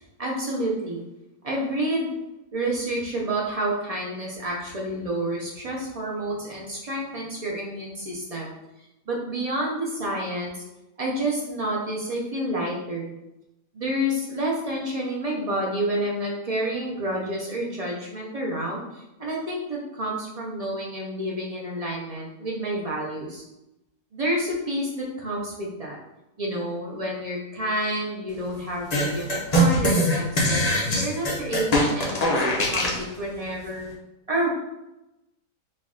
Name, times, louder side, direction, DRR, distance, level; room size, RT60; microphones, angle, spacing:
voice 1, 0.2-1.0 1.4-2.1 2.5-8.5 9.1-10.6 11.0-13.1 13.7-23.4 24.1-26.0 26.4-33.9 34.3-34.5, right 1 dB, 45° right, -3 dB, 0.4 m, -29 dB
sound 1, 28.9-33.0, equal, 40° left, 0.5 m, -22 dB
4.5 x 2.4 x 3.7 m, 0.94 s
omnidirectional pair, 1.7 m